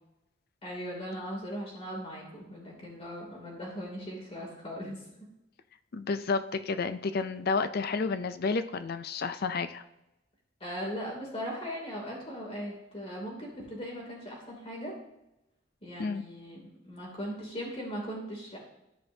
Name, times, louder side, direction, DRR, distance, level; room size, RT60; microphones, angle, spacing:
voice 1, 0.6-5.2 10.6-14.9 15.8-18.6, equal, 35° left, -2 dB, 2.7 m, -39 dB
voice 2, 5.9-9.8 16.0-16.2, left 4 dB, 55° left, 11 dB, 0.5 m, -31 dB
13.0 x 5.1 x 2.7 m, 0.90 s
head